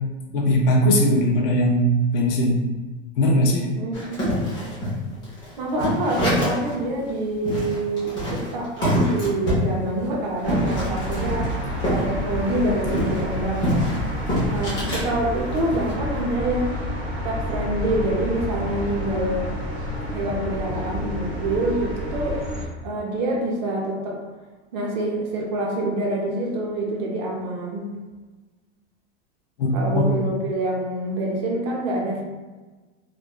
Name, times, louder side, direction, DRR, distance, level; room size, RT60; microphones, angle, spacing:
voice 1, 0.3-1.9 2.1-2.6 3.2-3.7 29.6-30.1, left 1 dB, 50° left, 1 dB, 0.5 m, -19 dB
voice 2, 3.8-4.2 5.6-13.9 14.5-16.7 17.2-19.5 20.0-22.4 22.8-24.2 24.7-27.9 29.7-32.2, right 1 dB, 40° right, -2 dB, 0.5 m, -26 dB
sound 1, 3.9-6.7 7.1-7.2 7.5-12.0 12.3-15.1 15.5-15.9, equal, 10° left, 0.7 m, -25 dB
sound 2, 10.4-22.7, equal, 25° right, 1.0 m, -29 dB
3.1 x 2.4 x 2.2 m, 1.3 s
supercardioid pair, 170°, 35 cm